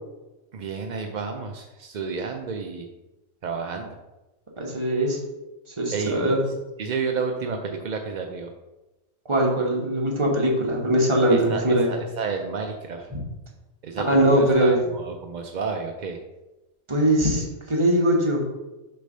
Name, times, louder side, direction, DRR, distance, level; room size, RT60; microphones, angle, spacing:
voice 1, 0.5-2.9 3.4-4.0 5.9-6.3 6.8-8.5 11.3-13.1 13.8-16.2, right 5 dB, 65° right, 4 dB, 0.4 m, -31 dB
voice 2, 4.6-5.2 5.7-6.4 9.2-11.9 13.1-13.2 14.0-14.8 16.9-18.4, right 1 dB, 25° right, -1 dB, 1.2 m, -21 dB
6.5 x 3.4 x 5.4 m, 1.0 s
omnidirectional pair, 1.4 m